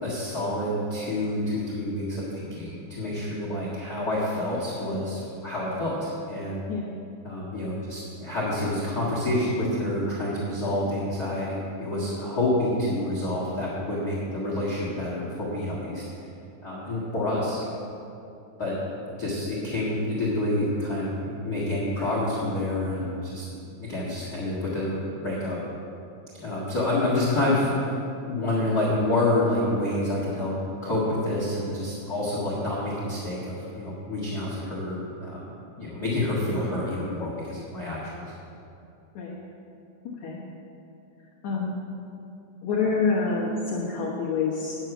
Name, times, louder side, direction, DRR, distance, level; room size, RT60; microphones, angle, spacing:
voice 1, 0.0-6.6 7.2-16.0 16.6-17.6 18.6-18.8 19.2-23.5 23.8-25.6 26.4-28.0 28.3-30.5 30.8-35.4 35.8-38.2, left 1 dB, 45° left, -6 dB, 1.2 m, -28 dB
voice 2, 40.0-40.5 41.4-41.8 42.6-44.8, left 4 dB, 70° left, -5 dB, 1.8 m, -27 dB
9.6 x 9.1 x 6.0 m, 2.7 s
omnidirectional pair, 4.8 m